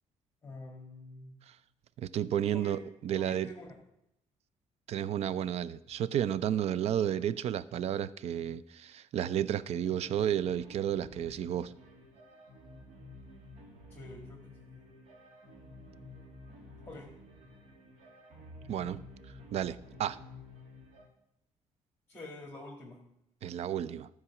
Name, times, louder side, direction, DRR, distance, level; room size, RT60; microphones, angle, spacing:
voice 1, 0.4-1.4 2.5-2.7 3.2-3.7 13.9-14.9 16.8-17.1 22.1-23.0, left 1 dB, 15° left, -1 dB, 1.6 m, -47 dB
voice 2, 2.0-3.5 4.9-11.7 18.7-19.0 19.5-20.2 23.4-24.1, right 10 dB, 55° right, 17 dB, 0.4 m, -32 dB
sound 1, 9.8-21.1, left 1 dB, 80° right, 2.2 m, -52 dB
13.0 x 4.7 x 7.0 m, 0.81 s
cardioid pair, 135°, 13 cm